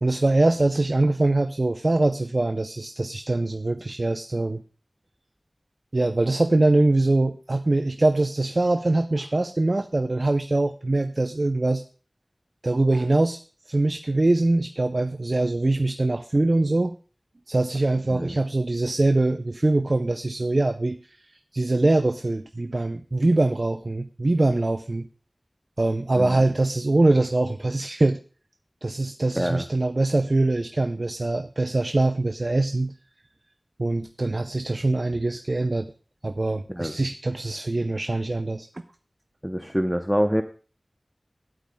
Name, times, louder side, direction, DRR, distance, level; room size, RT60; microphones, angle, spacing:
voice 1, 0.0-4.6 5.9-11.8 12.6-13.4 13.7-16.9 17.5-25.1 25.8-28.2 28.8-32.9 33.8-35.9 36.2-38.7, right 2 dB, 60° right, 9 dB, 0.5 m, -23 dB
voice 2, 39.4-40.4, equal, 5° right, 7 dB, 0.7 m, -25 dB
14.0 x 11.5 x 2.2 m, 0.38 s
wide cardioid pair, 40°, 0 cm